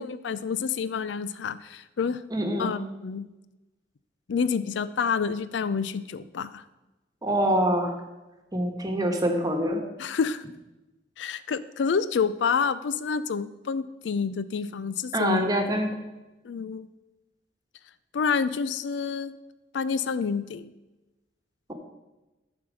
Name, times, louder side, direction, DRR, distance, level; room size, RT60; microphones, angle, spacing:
voice 1, 0.0-2.2 2.6-3.3 4.3-6.6 10.0-10.4 11.2-15.5 16.4-16.9 18.1-19.3 19.7-20.7, left 6 dB, 80° left, 15 dB, 0.4 m, -28 dB
voice 2, 2.3-2.7 7.2-7.9 8.5-9.8 15.1-15.9, right 1 dB, 20° right, 4 dB, 1.2 m, -25 dB
11.5 x 4.4 x 6.3 m, 1.1 s
head